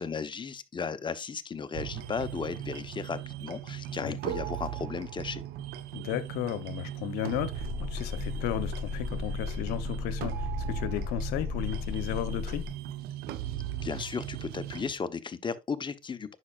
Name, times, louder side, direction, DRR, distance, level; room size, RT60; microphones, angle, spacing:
voice 1, 0.0-5.4 13.8-16.4, left 5 dB, 30° left, 1.0 m, -35 dB
sound 1, 1.7-14.9, right 12 dB, 70° right, 0.8 m, -38 dB
voice 2, 5.9-12.6, left 11 dB, 75° left, 0.9 m, -34 dB
sound 2, 7.6-12.7, left 5 dB, 25° right, 2.9 m, -35 dB
9.6 x 6.0 x 2.5 m
supercardioid pair, 70°, 16 cm